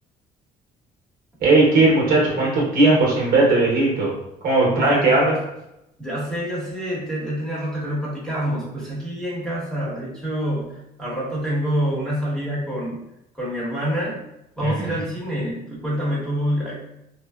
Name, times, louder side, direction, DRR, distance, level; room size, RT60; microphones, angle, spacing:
voice 1, 1.4-4.1 4.4-5.3 14.6-15.0, right 2 dB, 60° right, -3 dB, 1.0 m, -18 dB
voice 2, 6.0-13.0 13.4-14.2 14.6-16.7, equal, 5° left, -7 dB, 1.2 m, -26 dB
3.2 x 2.1 x 2.3 m, 0.85 s
cardioid pair, 110°, 17 cm